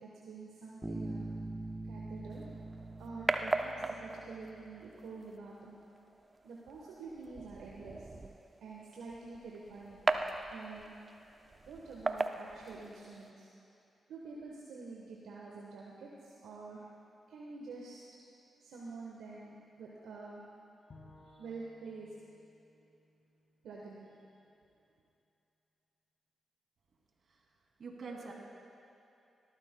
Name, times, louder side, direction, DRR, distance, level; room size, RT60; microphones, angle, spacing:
voice 1, 0.0-1.3 1.8-2.5 3.0-5.8 6.4-8.1 8.6-10.1 10.5-11.0 11.7-13.5 14.1-16.9 17.3-18.0 18.6-20.4 21.2-22.1 23.6-24.1, right 4 dB, 80° right, -4 dB, 1.1 m, -47 dB
Bass guitar, 0.8-4.5, right 2 dB, 15° right, 1.1 m, -43 dB
sound 1, 2.3-13.3, right 2 dB, 35° right, 0.6 m, -39 dB
Bowed string instrument, 20.9-24.2, left 2 dB, 55° left, 1.7 m, -61 dB
voice 2, 27.8-28.3, right 4 dB, 60° right, -1 dB, 2.4 m, -45 dB
19.0 x 13.5 x 2.2 m, 2.7 s
supercardioid pair, 40°, 0 cm